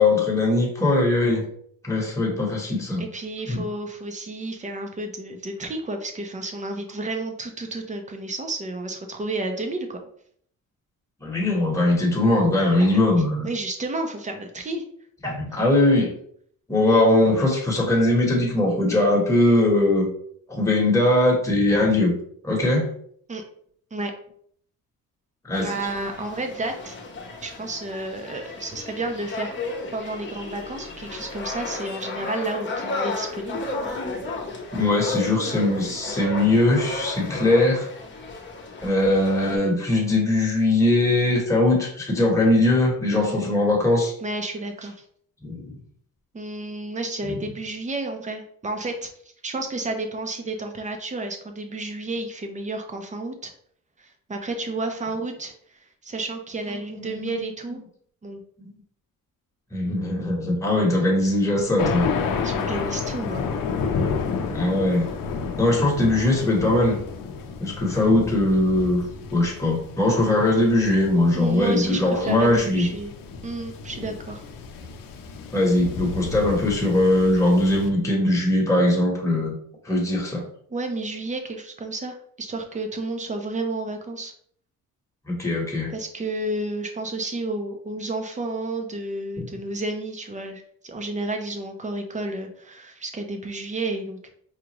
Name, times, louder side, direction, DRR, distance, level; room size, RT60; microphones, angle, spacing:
voice 1, 0.0-1.4 1.8-3.0 3.5-3.7 11.2-13.5 15.2-16.1 16.7-20.0 20.5-22.1 22.4-22.9 25.5-25.7 34.7-37.9 38.8-44.1 45.4-45.8 47.2-47.4 56.9-57.4 58.6-58.8 59.7-62.1 64.5-65.1 65.6-67.0 67.6-69.0 69.3-72.9 75.5-79.5 79.8-80.4 85.2-85.9 89.4-89.5, left 2 dB, 10° left, -3 dB, 1.1 m, -20 dB
voice 2, 3.0-10.0 12.8-12.9 13.4-14.8 23.3-23.4 23.9-24.1 25.6-27.0 27.4-29.5 29.9-33.6 33.9-34.1 44.2-45.0 46.3-49.1 49.4-53.5 54.0-57.8 58.2-58.4 62.4-63.4 71.3-73.1 73.4-74.4 80.7-84.3 85.9-94.3, right 2 dB, 20° right, 4 dB, 0.6 m, -31 dB
sound 1, 25.5-39.6, left 3 dB, 35° left, 0.8 m, -33 dB
Thunder, 61.8-77.9, left 5 dB, 75° left, 0.6 m, -31 dB
5.0 x 2.4 x 3.0 m, 0.63 s
cardioid pair, 130°, 34 cm